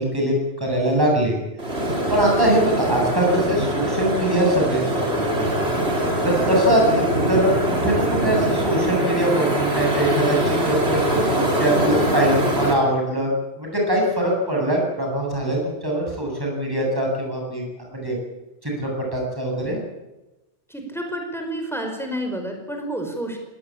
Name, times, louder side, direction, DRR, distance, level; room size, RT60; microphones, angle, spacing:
voice 1, 0.0-1.4 2.1-5.0 5.4-5.5 6.2-13.3 13.6-17.6 17.9-18.2 18.6-19.8, right 1 dB, 20° right, -1 dB, 8.0 m, -22 dB
sound 1, 1.6-12.7, right 1 dB, 65° right, 4.9 m, -23 dB
voice 2, 20.7-23.4, right 1 dB, ahead, 3 dB, 5.2 m, -29 dB
20.5 x 19.0 x 8.8 m, 1.0 s
omnidirectional pair, 1.2 m